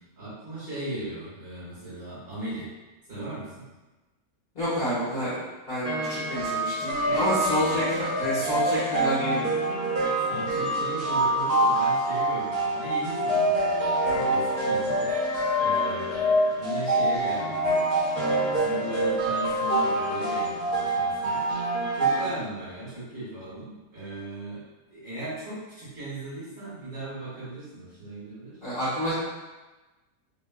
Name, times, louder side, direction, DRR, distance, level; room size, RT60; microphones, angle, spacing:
voice 1, 0.0-2.7 3.1-3.7 7.0-7.8 8.2-8.5 9.9-17.8 18.2-21.4 21.9-24.6 24.9-28.6, right 1 dB, 70° right, -11 dB, 2.1 m, -38 dB
voice 2, 4.5-5.4 5.7-9.5 28.6-29.1, equal, 45° left, -12 dB, 1.3 m, -28 dB
sound 1, 5.8-22.3, right 1 dB, 45° right, 0.6 m, -26 dB
3.7 x 2.6 x 2.2 m, 1.2 s
omnidirectional pair, 1.5 m